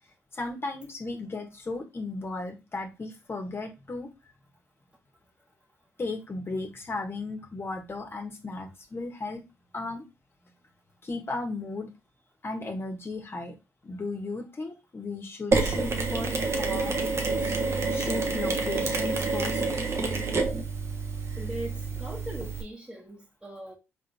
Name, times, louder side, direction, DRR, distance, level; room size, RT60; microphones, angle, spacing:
voice 1, 0.3-4.1 6.0-9.4 9.7-10.0 11.0-11.9 12.4-13.5 13.8-16.9 17.4-17.6 17.9-19.6, left 3 dB, 40° left, 1.5 m, -35 dB
Mechanisms, 15.5-22.6, right 3 dB, 50° right, 1.1 m, -28 dB
voice 2, 21.4-23.7, right 1 dB, 15° right, 1.4 m, -40 dB
4.0 x 3.6 x 3.5 m
supercardioid pair, 45°, 6 cm